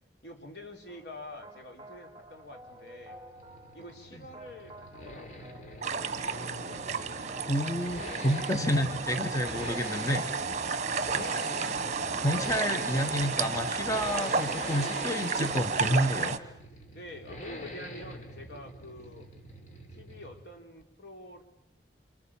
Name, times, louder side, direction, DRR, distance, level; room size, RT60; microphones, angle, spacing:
voice 1, 0.2-3.2 3.7-5.7 7.5-7.9 11.4-11.7 16.9-19.3 19.9-21.4, left 1 dB, 70° left, 3 dB, 3.9 m, -47 dB
sound 1, 0.9-12.5, right 1 dB, 25° right, 2.7 m, -51 dB
Accelerating revving vroom, 2.4-20.5 20.8-20.9, left 1 dB, 45° left, 3.7 m, -44 dB
sound 2, 5.8-16.4, right 5 dB, 40° right, 1.1 m, -32 dB
voice 2, 7.4-10.2 11.1-11.2 12.2-16.4, equal, 20° left, 6 dB, 1.3 m, -30 dB
29.0 x 27.0 x 7.3 m, 0.83 s
head